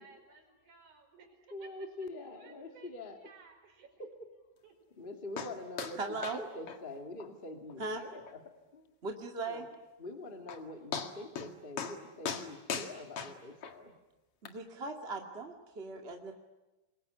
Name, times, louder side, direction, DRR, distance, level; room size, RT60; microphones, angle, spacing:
voice 1, 0.0-1.9 2.2-3.9 4.6-4.7, right 5 dB, 55° right, 4 dB, 6.3 m, -58 dB
voice 2, 1.5-3.2 4.0-4.1 5.0-6.0 6.3-8.9 9.4-9.7 10.0-13.9, left 2 dB, 15° left, 4 dB, 2.0 m, -45 dB
sound 1, 5.4-5.5 5.8-6.0 6.2-6.4 6.7-6.8 7.2-7.3 7.7-7.8 8.3-8.4 10.0-10.1 10.5-10.6 10.9-11.5 11.8-12.0 12.2-13.7 14.4-14.5, left 6 dB, 45° left, 2.4 m, -38 dB
voice 3, 6.0-6.4 7.8-8.0 9.0-9.6 14.4-16.3, right 3 dB, 20° right, 2 dB, 1.8 m, -38 dB
27.5 x 22.5 x 9.7 m, 1.1 s
omnidirectional pair, 4.2 m